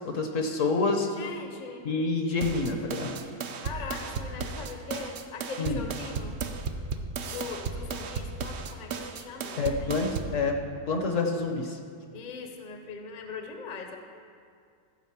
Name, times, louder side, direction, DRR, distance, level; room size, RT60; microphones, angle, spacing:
voice 1, 0.0-1.1 1.8-3.1 5.6-5.8 9.6-10.6 10.9-11.8, left 3 dB, 55° left, 4 dB, 1.1 m, -27 dB
voice 2, 1.1-1.9 3.6-6.4 7.2-10.0 12.1-14.0, left 4 dB, 35° left, 4 dB, 0.7 m, -40 dB
sound 1, 2.4-10.4, right 4 dB, 60° right, 0.7 m, -35 dB
15.0 x 4.9 x 7.2 m, 2.2 s
omnidirectional pair, 1.8 m